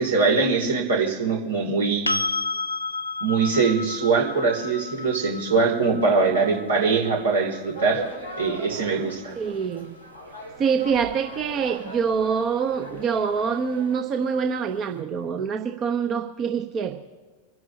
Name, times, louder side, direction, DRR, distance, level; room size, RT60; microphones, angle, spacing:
voice 1, 0.0-2.1 3.2-8.0 8.4-9.3, right 4 dB, 70° right, -1 dB, 2.8 m, -22 dB
sound 1, 2.1-9.9 12.7-12.8, left 3 dB, 85° left, 0.6 m, -33 dB
sound 2, 7.7-14.0, right 1 dB, 90° right, 2.8 m, -39 dB
voice 2, 9.4-9.9 10.6-16.9, right 6 dB, 30° right, 6 dB, 0.9 m, -25 dB
27.5 x 11.0 x 2.9 m, 1.4 s
figure-of-eight pair, 90°, 0 cm